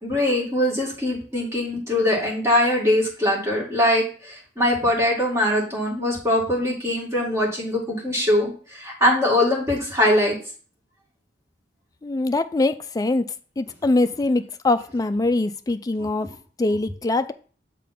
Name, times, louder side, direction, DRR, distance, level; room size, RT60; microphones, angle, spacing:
voice 1, 0.0-10.4 16.0-16.1, left 1 dB, 15° right, 2.0 m, -22 dB
voice 2, 12.0-13.3 13.6-16.3 16.6-17.3, left 2 dB, 20° left, 0.3 m, -23 dB
7.5 x 3.6 x 4.1 m
head